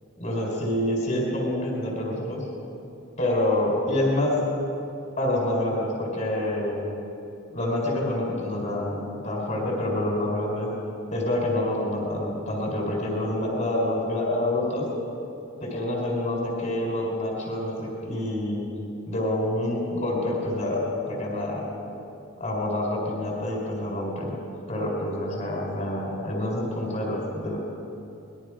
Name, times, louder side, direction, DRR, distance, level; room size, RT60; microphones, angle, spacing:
voice 1, 0.2-2.5 3.2-4.5 5.2-6.9 7.5-10.7 11.1-14.9 15.6-18.7 19.1-21.7 22.4-24.4 24.7-27.6, left 1 dB, 35° left, -1 dB, 4.4 m, -27 dB
24.5 x 21.0 x 5.0 m, 2.8 s
head